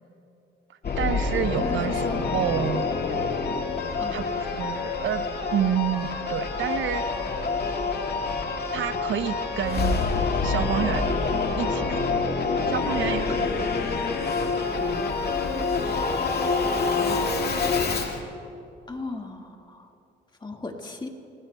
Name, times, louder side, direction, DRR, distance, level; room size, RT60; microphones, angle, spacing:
Singing / Musical instrument, 0.8-18.2, left 4 dB, 55° left, 1.9 m, -26 dB
voice 1, 1.0-2.8 4.1-5.2 5.5-7.2 7.5-7.9 8.7-10.0 10.4-11.1 11.6-12.2 12.7-13.7, right 9 dB, 75° right, 10 dB, 0.8 m, -29 dB
voice 2, 1.6-3.0 4.0-4.2 18.9-19.9 20.4-21.1, left 3 dB, 20° left, 2 dB, 1.7 m, -36 dB
29.5 x 18.5 x 2.2 m, 2.7 s
cardioid pair, 90°, 20 cm